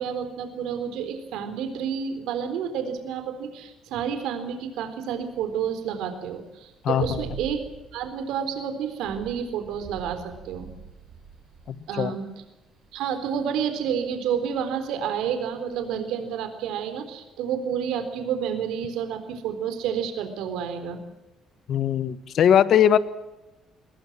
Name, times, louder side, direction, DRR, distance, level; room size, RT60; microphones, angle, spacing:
voice 1, 0.0-7.6 7.9-10.7 11.9-12.3 12.9-21.0, right 8 dB, 85° right, 9 dB, 3.9 m, -30 dB
sound 1, 5.1-15.9, right 6 dB, 50° right, 5.6 m, -45 dB
voice 2, 6.8-7.2 11.7-12.2 21.7-23.0, left 9 dB, 50° left, 14 dB, 1.3 m, -20 dB
22.0 x 21.0 x 7.6 m, 1.0 s
cardioid pair, 165°, 0 cm